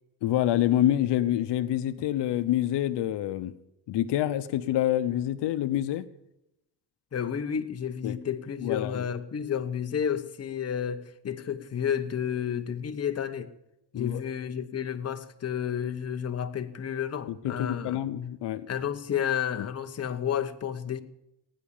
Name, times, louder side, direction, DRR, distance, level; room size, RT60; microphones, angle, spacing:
voice 1, 0.2-3.5 3.9-6.1 8.0-8.2 8.6-9.1 13.9-14.2 17.3-18.7, left 12 dB, 90° left, 0.9 m, -27 dB
voice 2, 7.1-13.5 13.9-18.0 18.7-21.0, left 8 dB, 40° left, 1.0 m, -31 dB
16.5 x 9.9 x 7.2 m
cardioid pair, 130°, 40 cm